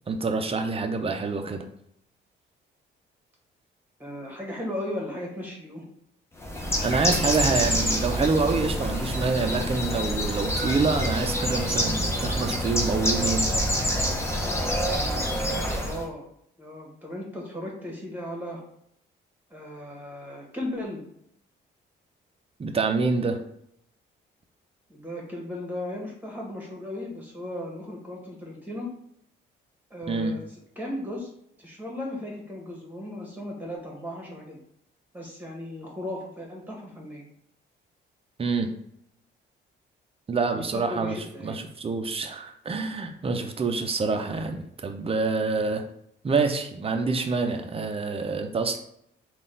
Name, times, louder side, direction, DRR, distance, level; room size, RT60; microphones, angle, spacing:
voice 1, 0.1-1.7 6.8-13.4 22.6-23.4 30.1-30.4 38.4-38.7 40.3-45.8 46.2-48.8, right 4 dB, 30° right, 5 dB, 0.6 m, -26 dB
voice 2, 4.0-5.8 15.7-16.2 16.6-18.6 19.5-21.0 24.9-28.9 29.9-30.4 30.7-31.3 31.6-34.6 35.1-37.3 40.5-41.6, left 1 dB, 10° right, -1 dB, 1.5 m, -36 dB
Bird, 6.4-16.1, equal, 15° left, 0.8 m, -26 dB
3.9 x 2.5 x 3.9 m, 0.72 s
cardioid pair, 90°, 20 cm